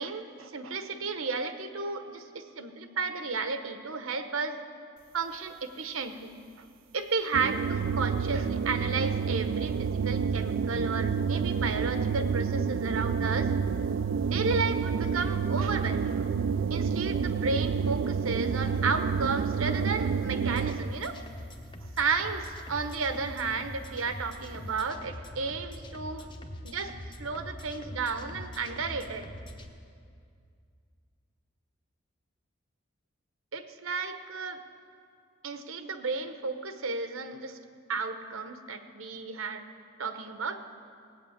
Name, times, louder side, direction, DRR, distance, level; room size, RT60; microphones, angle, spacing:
voice 1, 0.0-4.6 5.1-6.3 6.9-13.5 14.3-16.2 16.7-21.2 22.0-26.3 26.6-26.9 27.2-29.3 33.5-34.6 35.4-37.6 37.9-39.6 40.0-40.6, right 4 dB, 85° right, 8 dB, 0.9 m, -33 dB
sound 1, 7.3-21.0, right 6 dB, 65° right, 0.3 m, -29 dB
sound 2, 20.3-29.6, left 1 dB, 25° left, 0.8 m, -43 dB
17.5 x 8.9 x 7.2 m, 2.3 s
head